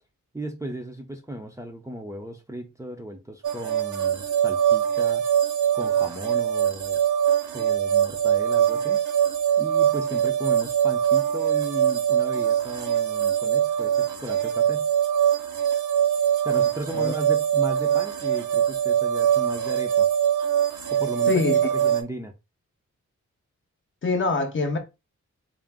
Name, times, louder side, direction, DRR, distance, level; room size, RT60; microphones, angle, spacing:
voice 1, 0.3-5.2 5.7-7.0 7.5-9.0 9.6-14.9 16.2-20.1 20.9-21.4 21.7-22.3, right 1 dB, 10° right, 0.5 m, -36 dB
sound 1, 3.4-22.0, right 9 dB, 85° right, 0.7 m, -23 dB
voice 2, 21.3-21.6 24.0-24.8, left 3 dB, 40° left, 0.7 m, -24 dB
3.7 x 2.4 x 3.5 m
wide cardioid pair, 150°, 30 cm